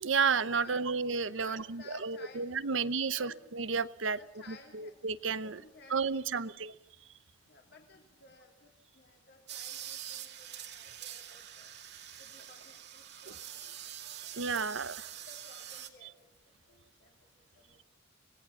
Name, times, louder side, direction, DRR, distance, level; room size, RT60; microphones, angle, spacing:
voice 1, 0.0-4.2 4.5-5.6 5.9-6.7 14.3-15.1, right 5 dB, 75° right, 15 dB, 0.8 m, -32 dB
voice 2, 1.4-3.4 4.0-4.9 5.4-6.5 7.5-11.7 12.2-13.9 14.2-14.6 15.3-16.4 16.7-17.8, left 3 dB, 55° left, 1 dB, 3.1 m, -56 dB
sound 1, 9.5-15.9, right 10 dB, 60° right, 2.3 m, -45 dB
25.5 x 19.0 x 7.2 m, 0.83 s
head